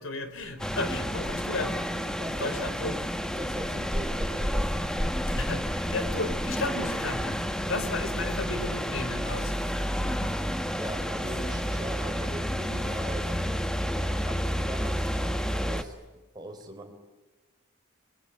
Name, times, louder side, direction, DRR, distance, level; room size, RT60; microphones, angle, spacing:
voice 1, 0.0-1.8 2.4-2.9 5.3-10.3, left 2 dB, 60° left, 9 dB, 3.7 m, -34 dB
sound 1, 0.6-15.8, equal, 5° left, 1.4 m, -30 dB
voice 2, 2.1-2.7 3.4-5.2 10.8-13.7 14.1-16.0 16.3-16.9, right 1 dB, 20° right, 4 dB, 4.0 m, -41 dB
26.0 x 21.0 x 9.8 m, 1.2 s
head